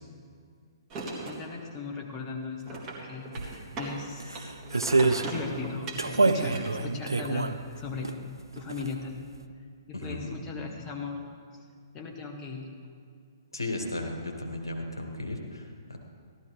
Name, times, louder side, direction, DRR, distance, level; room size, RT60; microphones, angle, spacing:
sound 1, 0.9-1.5 2.6-4.0 4.3-7.3, right 2 dB, 25° right, 1.8 m, -38 dB
voice 1, 1.2-4.5 5.2-7.5 7.8-9.2 9.9-11.2 11.9-12.7, left 4 dB, 20° left, 2 dB, 1.2 m, -38 dB
sound 2, 3.3-3.5 4.2-5.3 6.0-8.2 8.5-9.0 9.3-9.4, right 3 dB, 80° right, 0.5 m, -26 dB
voice 2, 9.9-10.3 13.5-16.0, left 2 dB, 85° left, 2 dB, 1.5 m, -35 dB
15.5 x 12.5 x 3.3 m, 2.1 s
figure-of-eight pair, 125°, 2 cm